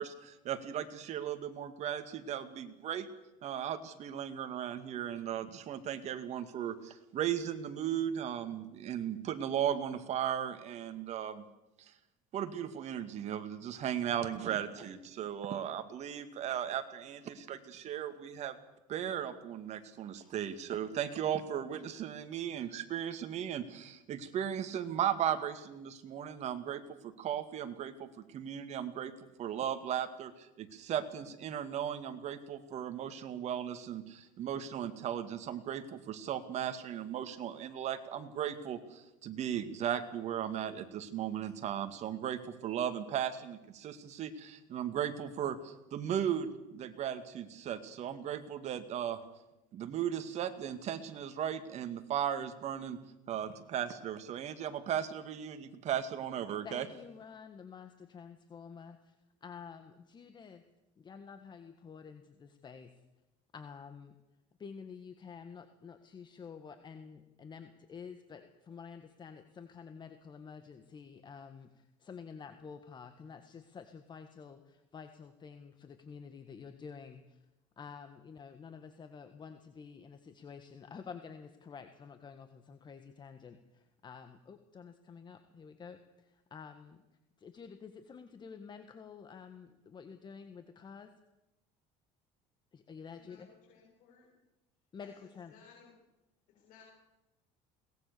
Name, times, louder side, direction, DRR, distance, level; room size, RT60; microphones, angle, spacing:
voice 1, 0.0-3.1 3.4-11.4 11.8-11.9 12.3-18.6 18.9-29.1 29.4-49.2 49.7-53.0 53.3-56.9, right 9 dB, 50° right, 9 dB, 2.2 m, -36 dB
voice 2, 56.6-60.6 61.0-63.0 63.5-64.2 64.6-77.4 77.8-87.0 87.4-91.1 92.7-93.5 94.9-95.6, left 6 dB, 30° left, 8 dB, 1.7 m, -50 dB
voice 3, 93.2-94.2 95.0-95.1 95.5-95.9 96.5-96.8, left 6 dB, 70° left, 0 dB, 6.5 m, -60 dB
22.5 x 19.0 x 6.9 m, 0.96 s
cardioid pair, 115°, 15 cm